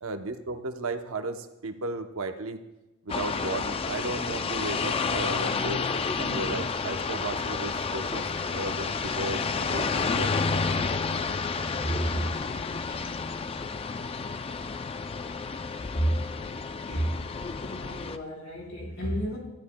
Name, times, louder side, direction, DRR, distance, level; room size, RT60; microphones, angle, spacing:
voice 1, 0.0-2.6 3.1-5.8 6.2-8.3 8.5-10.9, right 2 dB, 70° right, 7 dB, 0.8 m, -35 dB
sound 1, 3.1-18.2, left 4 dB, 25° left, 0.4 m, -30 dB
voice 2, 11.8-12.4 12.9-13.1 15.9-16.2 16.7-17.3 17.6-19.4, right 1 dB, 65° left, -1 dB, 4.6 m, -31 dB
18.5 x 13.5 x 2.2 m, 1.0 s
head